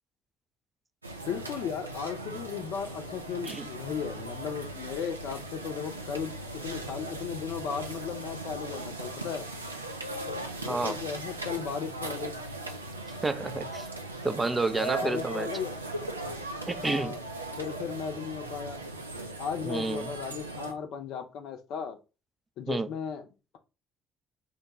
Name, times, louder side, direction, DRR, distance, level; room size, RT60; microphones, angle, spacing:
sound 1, 1.0-20.7, right 2 dB, 85° right, 0.4 m, -38 dB
voice 1, 1.3-6.3 6.6-9.5 10.3-12.3 14.8-15.8 16.8-17.2 17.6-18.8 19.4-22.0 22.6-23.2, left 7 dB, 60° left, 0.6 m, -36 dB
voice 2, 13.2-13.9 14.2-15.5 16.7-17.2 19.6-20.1 22.7-22.9, right 3 dB, 20° right, 0.4 m, -30 dB
4.5 x 2.2 x 2.9 m
figure-of-eight pair, 50°, 0 cm